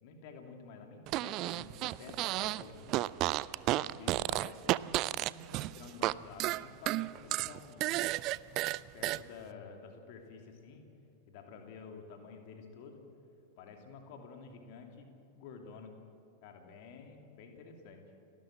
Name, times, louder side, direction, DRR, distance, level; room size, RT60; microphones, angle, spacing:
voice 1, 0.0-3.0 3.7-7.9 8.9-10.8 11.3-13.0 13.6-15.9 16.4-18.0, left 5 dB, 50° left, 3 dB, 2.8 m, -50 dB
Fart, 1.1-2.6 2.9-6.1 6.4-9.2, right 17 dB, 40° right, 0.4 m, -32 dB
29.5 x 12.5 x 7.5 m, 2.7 s
figure-of-eight pair, 90°, 0 cm